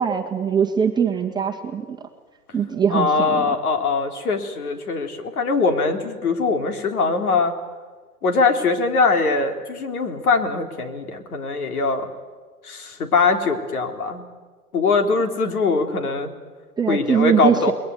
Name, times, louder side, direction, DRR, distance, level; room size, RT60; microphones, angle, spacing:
voice 1, 0.0-2.0 2.5-3.5 16.8-17.7, right 7 dB, 10° right, 1 dB, 1.6 m, -22 dB
voice 2, 2.9-7.5 8.2-12.1 12.6-14.2 14.7-16.3 16.9-17.7, left 4 dB, 65° left, 5 dB, 3.8 m, -22 dB
29.0 x 21.5 x 9.4 m, 1.4 s
hypercardioid pair, 125°, 47 cm